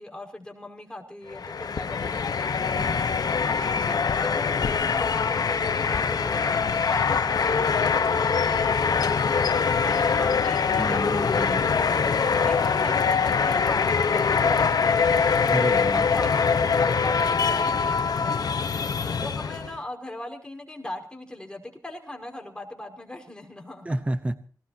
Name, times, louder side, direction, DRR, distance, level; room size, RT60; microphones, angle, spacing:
voice 1, 0.0-11.7 12.1-15.5 15.9-24.0, left 1 dB, 15° left, 1 dB, 5.4 m, -39 dB
sound 1, 1.3-19.8, left 5 dB, 75° left, 1.1 m, -23 dB
voice 2, 10.8-11.6 15.5-16.0 23.8-24.4, right 1 dB, 20° right, 11 dB, 1.0 m, -29 dB
26.0 x 18.0 x 2.9 m, 0.42 s
wide cardioid pair, 115°, 7 cm